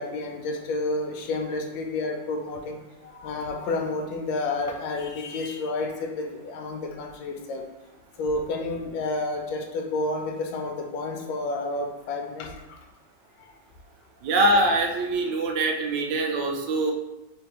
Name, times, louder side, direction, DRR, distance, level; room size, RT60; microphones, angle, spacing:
voice 1, 0.0-2.8 3.0-7.7 8.2-12.5, left 2 dB, 80° left, 3 dB, 1.3 m, -30 dB
voice 2, 14.2-16.9, right 2 dB, 75° right, 2 dB, 1.2 m, -23 dB
3.5 x 3.5 x 2.9 m, 0.99 s
omnidirectional pair, 2.1 m